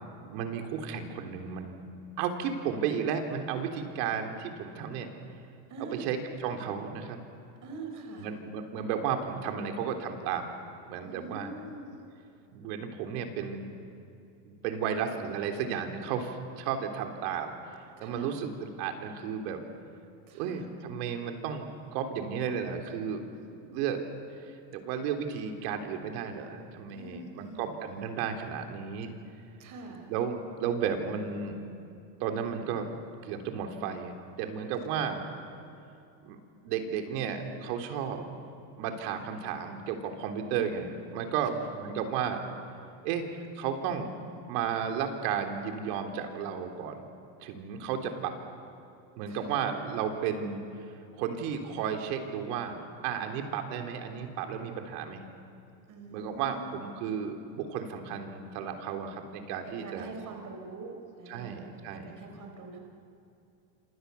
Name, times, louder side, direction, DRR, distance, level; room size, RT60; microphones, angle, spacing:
voice 1, 0.2-1.8 2.2-5.1 5.8-6.2 6.4-7.2 8.2-10.5 10.9-11.5 12.5-13.8 14.4-17.6 18.0-19.6 20.3-23.2 23.6-24.0 24.4-29.1 30.1-31.6 32.2-32.9 33.2-35.2 36.2-38.2 38.8-42.4 43.0-43.3 43.6-44.1 44.5-47.0 47.4-48.3 49.2-50.6 51.2-52.8 53.0-55.2 56.1-60.1 61.3-62.2, right 7 dB, 70° right, 4 dB, 3.7 m, -33 dB
voice 2, 5.7-6.1 7.6-8.3 11.0-11.9 18.0-18.3 20.3-20.6 26.9-28.0 29.6-30.1 34.9-35.1 41.5-41.6 49.3-49.6 55.9-56.8 59.6-62.8, right 3 dB, 35° right, 3 dB, 4.6 m, -44 dB
27.5 x 26.5 x 7.0 m, 2.7 s
supercardioid pair, 120°, 50 cm